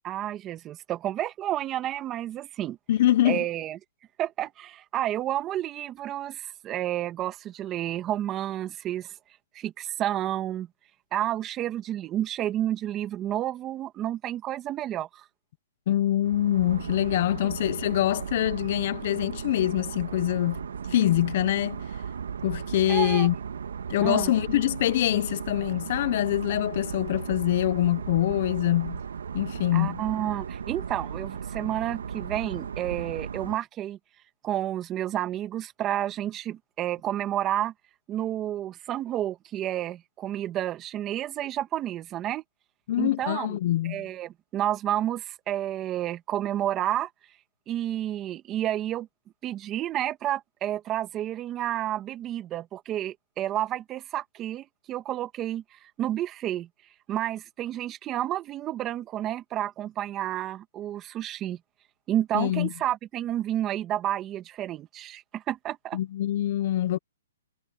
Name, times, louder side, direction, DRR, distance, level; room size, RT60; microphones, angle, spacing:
voice 1, 0.0-2.8 3.2-3.8 4.2-9.1 9.5-10.7 11.1-15.2 17.4-17.5 22.9-23.3 24.0-24.3 29.7-34.0 34.4-37.7 38.1-42.4 43.0-43.6 43.8-47.1 47.7-49.1 49.4-56.7 57.1-61.6 62.1-66.0, right 12 dB, 20° right, 1.8 m, -30 dB
voice 2, 2.9-3.4 15.9-21.8 22.4-23.3 23.9-29.0 29.3-30.0 42.9-44.0 62.3-62.7 65.9-67.0, left 13 dB, 45° left, 0.8 m, -24 dB
sound 1, 16.2-33.6, right 7 dB, 80° right, 1.7 m, -36 dB
hypercardioid pair, 155°, 0 cm